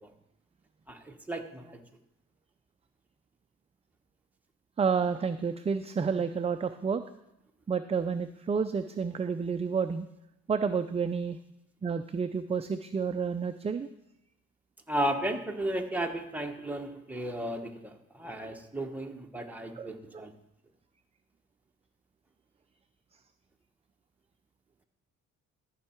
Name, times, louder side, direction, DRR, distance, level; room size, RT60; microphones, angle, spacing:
voice 1, 0.9-1.8 14.9-20.3, right 1 dB, 5° right, 2 dB, 1.2 m, -34 dB
voice 2, 4.8-7.0 7.7-10.1 10.5-11.4 11.8-13.9 19.7-20.3, right 5 dB, 20° right, 9 dB, 0.4 m, -30 dB
14.0 x 5.5 x 4.5 m, 0.86 s
cardioid pair, 90°, 30 cm